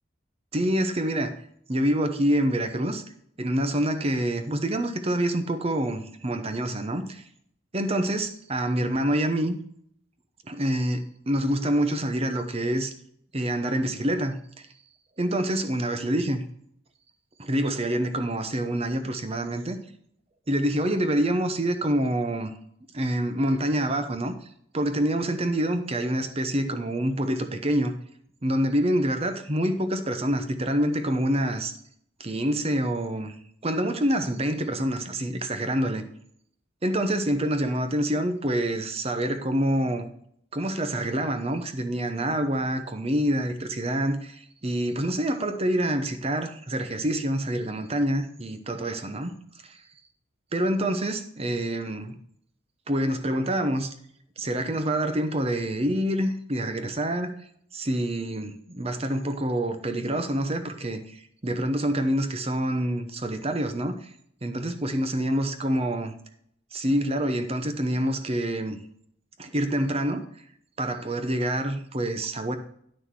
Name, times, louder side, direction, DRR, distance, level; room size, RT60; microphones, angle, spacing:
voice 1, 0.5-1.3 1.7-3.0 3.4-7.2 7.7-9.6 10.5-12.9 13.3-14.3 15.2-16.4 17.4-19.8 20.5-22.5 22.9-24.3 24.7-27.9 28.4-31.7 32.2-33.3 33.6-36.1 36.8-40.0 40.5-49.3 50.5-52.1 52.9-53.9 54.4-57.3 57.7-61.0 61.4-64.0 64.4-66.1 66.7-68.8 69.4-70.2 70.8-72.6, right 1 dB, 30° right, 8 dB, 0.9 m, -26 dB
9.6 x 6.3 x 4.7 m, 0.67 s
head